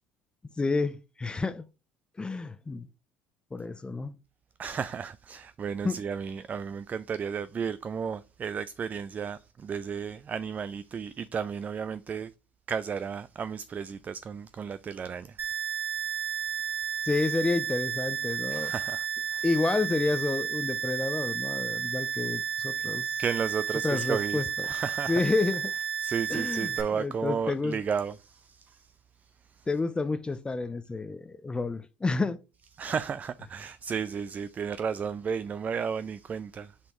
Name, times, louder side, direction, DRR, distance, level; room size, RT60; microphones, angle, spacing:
voice 1, 0.6-1.6 2.2-2.9 3.5-4.1 5.8-6.0 17.0-18.7 19.4-23.1 23.8-24.7 25.1-25.7 26.3-27.8 29.7-32.4, left 3 dB, 20° left, 0.5 m, -29 dB
voice 2, 4.6-12.3 12.7-15.4 18.5-19.5 23.2-25.2 26.0-28.9 29.6-29.7 32.8-36.7, right 6 dB, 35° right, 0.3 m, -33 dB
sound 1, 15.4-26.8, right 8 dB, 55° right, 2.6 m, -32 dB
8.0 x 4.3 x 3.0 m
hypercardioid pair, 70°, 5 cm